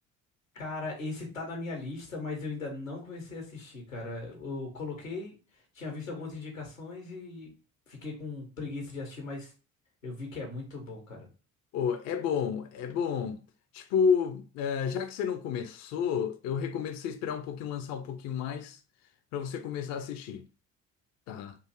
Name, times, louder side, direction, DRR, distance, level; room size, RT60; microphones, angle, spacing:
voice 1, 0.5-7.5 7.9-9.5 10.0-11.3, left 3 dB, 85° left, 0.9 m, -38 dB
voice 2, 11.7-13.4 13.7-18.8 19.3-20.4 21.3-21.6, left 7 dB, 45° left, 0.4 m, -31 dB
3.6 x 2.5 x 2.8 m
figure-of-eight pair, 45°, 40 cm